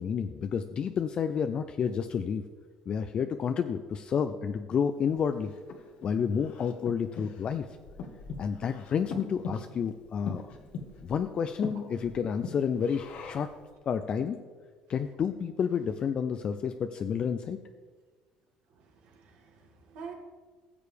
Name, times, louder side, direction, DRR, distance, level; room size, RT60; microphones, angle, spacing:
voice 1, 0.0-2.4 2.9-5.5 6.0-7.7 8.4-10.5 11.0-13.5 13.9-14.4 14.9-17.6, left 7 dB, 45° left, 8 dB, 0.4 m, -30 dB
Breathing, 5.1-13.6, left 4 dB, 65° left, 1.2 m, -43 dB
voice 2, 18.7-20.1, right 6 dB, 75° right, 1 dB, 2.0 m, -47 dB
15.0 x 6.7 x 3.4 m, 1.5 s
cardioid pair, 105°, 2 cm